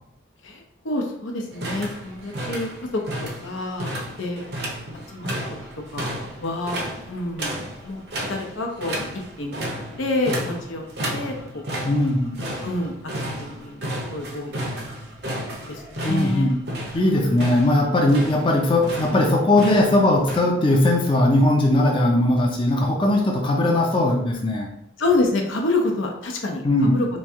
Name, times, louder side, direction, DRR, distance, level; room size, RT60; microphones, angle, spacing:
voice 1, 0.4-3.0 3.4-4.4 5.1-5.4 5.9-6.8 7.1-7.6 7.8-8.0 8.3-9.0 9.4-9.7 10.0-10.8 11.1-11.6 12.6-15.0 15.7-16.5 17.1-17.4 25.0-27.1, left 2 dB, 85° left, 1 dB, 0.7 m, -27 dB
sound 1, 1.5-20.4, right 1 dB, 55° right, 0.6 m, -33 dB
voice 2, 11.8-12.4 16.0-16.5 16.9-24.7 26.6-27.0, left 1 dB, 25° left, 0 dB, 0.4 m, -19 dB
3.1 x 2.7 x 3.5 m, 0.72 s
head